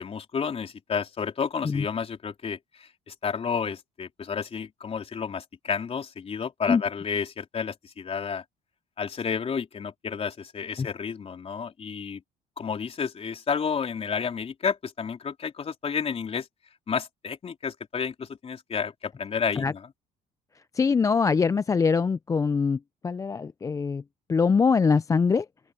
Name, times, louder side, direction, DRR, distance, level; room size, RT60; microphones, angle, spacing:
voice 1, 0.0-8.4 9.0-12.2 12.6-16.5 16.9-19.9, left 6 dB, 35° left, 3.8 m, -31 dB
voice 2, 20.8-22.8 23.0-24.0 24.3-25.5, left 5 dB, 20° left, 0.3 m, -23 dB
open air
cardioid pair, 110°, 17 cm